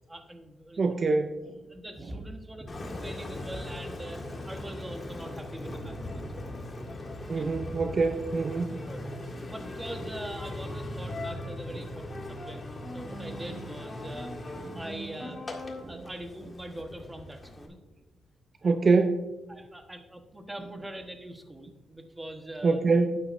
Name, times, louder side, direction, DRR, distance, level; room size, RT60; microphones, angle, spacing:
voice 1, 0.1-0.8 1.7-6.4 7.2-7.5 8.9-14.3 14.7-15.6 15.9-17.8 18.6-18.8 19.5-22.9, right 1 dB, 15° right, 5 dB, 1.2 m, -43 dB
voice 2, 0.8-1.6 7.3-8.8 14.7-14.8 15.8-16.0 18.6-19.3 22.6-23.2, right 4 dB, 40° right, 7 dB, 0.5 m, -25 dB
Engine, 2.7-17.7, left 1 dB, 30° left, 1.7 m, -39 dB
12.0 x 9.6 x 2.6 m, 1.2 s
cardioid pair, 100°, 0 cm